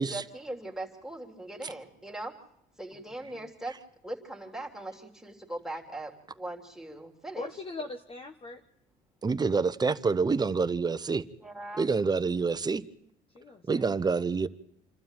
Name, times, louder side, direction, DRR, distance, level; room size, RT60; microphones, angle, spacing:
voice 1, 0.0-2.3 2.8-3.7 4.0-7.5 11.4-11.9, right 1 dB, 5° right, 3.2 m, -40 dB
voice 2, 7.3-8.6 13.3-14.1, left 3 dB, 35° left, 1.4 m, -41 dB
voice 3, 9.2-11.2 11.8-12.9 13.7-14.5, right 4 dB, 25° right, 0.9 m, -27 dB
28.0 x 12.5 x 9.1 m
cardioid pair, 110°, 17 cm